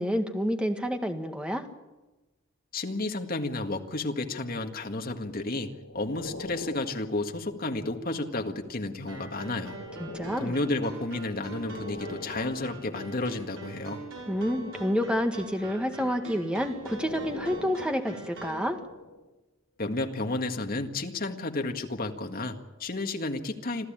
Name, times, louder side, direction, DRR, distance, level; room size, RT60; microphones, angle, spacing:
voice 1, 0.0-1.7 10.0-10.5 14.3-18.8, equal, 5° right, 5 dB, 1.6 m, -29 dB
voice 2, 2.7-9.8 10.4-14.0 19.8-23.8, left 2 dB, 45° left, 5 dB, 1.8 m, -32 dB
sound 1, 5.2-8.3 9.0-13.2 13.9-15.1 15.9-19.3 19.9-20.1, left 2 dB, 80° left, 5.1 m, -44 dB
sound 2, 9.1-18.7, right 2 dB, 70° right, 6.5 m, -43 dB
26.5 x 14.5 x 8.9 m, 1.1 s
head